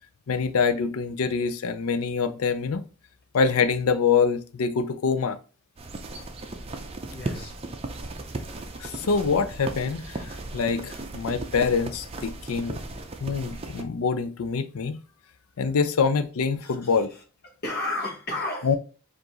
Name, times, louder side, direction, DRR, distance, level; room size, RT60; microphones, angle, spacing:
voice 1, 0.3-2.8 3.3-5.4 8.8-12.8 13.2-15.0 15.6-17.1 18.6-18.8, left 5 dB, 80° left, 0.5 m, -25 dB
sound 1, 5.8-13.8, right 2 dB, 25° right, 0.5 m, -36 dB
voice 2, 7.0-7.6 16.6-18.8, left 2 dB, 45° left, 1.0 m, -33 dB
4.7 x 2.5 x 3.9 m
head